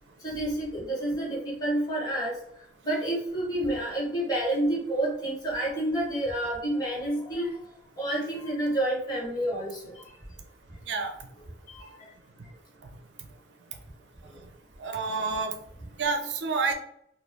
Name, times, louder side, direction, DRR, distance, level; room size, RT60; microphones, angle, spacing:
voice 1, 0.2-2.3 2.8-7.5 8.0-10.0 11.7-11.9 14.3-14.4, right 1 dB, 20° left, -6 dB, 1.4 m, -29 dB
voice 2, 14.8-15.6 16.0-16.7, right 4 dB, 85° right, 5 dB, 0.5 m, -28 dB
3.1 x 2.3 x 3.5 m, 0.71 s
head